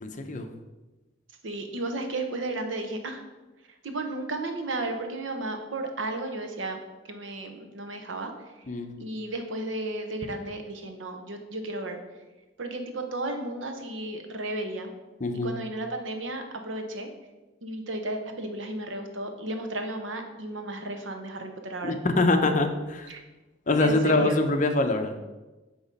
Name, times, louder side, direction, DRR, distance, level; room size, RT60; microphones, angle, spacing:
voice 1, 0.0-0.5 8.7-8.9 15.2-15.5 21.8-23.1 23.7-25.2, left 2 dB, 40° left, 6 dB, 0.6 m, -24 dB
voice 2, 1.4-3.2 3.8-6.8 7.0-8.3 9.0-12.0 12.6-14.9 15.4-17.1 17.6-22.0 23.1-23.2 23.8-24.4, right 2 dB, 80° right, 5 dB, 0.9 m, -34 dB
8.2 x 3.0 x 5.2 m, 1.1 s
head